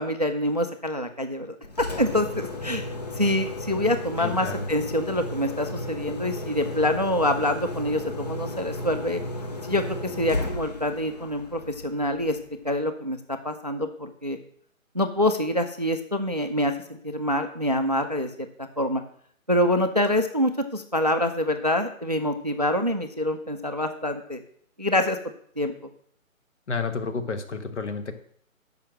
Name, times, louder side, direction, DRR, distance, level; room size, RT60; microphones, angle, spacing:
voice 1, 0.0-1.6 2.0-2.9 3.1-9.2 9.7-12.4 12.6-13.2 13.4-14.4 14.9-19.0 19.5-24.4 24.8-25.2 25.6-25.7, left 1 dB, 30° right, 8 dB, 0.4 m, -26 dB
Engine, 1.6-12.6, left 1 dB, 30° left, 0.7 m, -34 dB
voice 2, 4.2-4.7 26.7-28.1, left 4 dB, 55° left, 8 dB, 1.4 m, -30 dB
7.4 x 5.5 x 7.4 m, 0.63 s
figure-of-eight pair, 160°, 42 cm